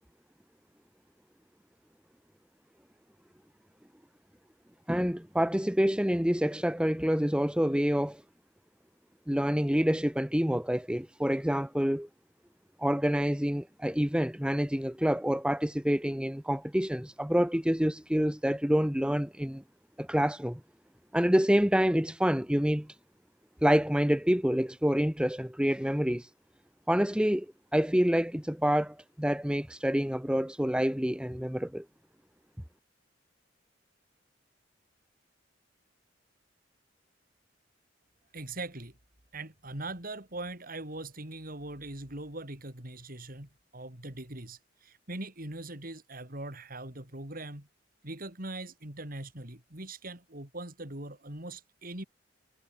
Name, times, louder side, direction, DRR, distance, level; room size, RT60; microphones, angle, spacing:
voice 1, 4.9-8.2 9.3-12.1 12.8-19.6 20.0-20.6 21.1-22.9 23.6-26.3 26.9-27.5 27.7-31.8, equal, 5° right, 1.4 m, -27 dB
voice 2, 38.3-39.0 39.3-47.7 48.0-52.0, right 2 dB, 50° right, 5.0 m, -41 dB
head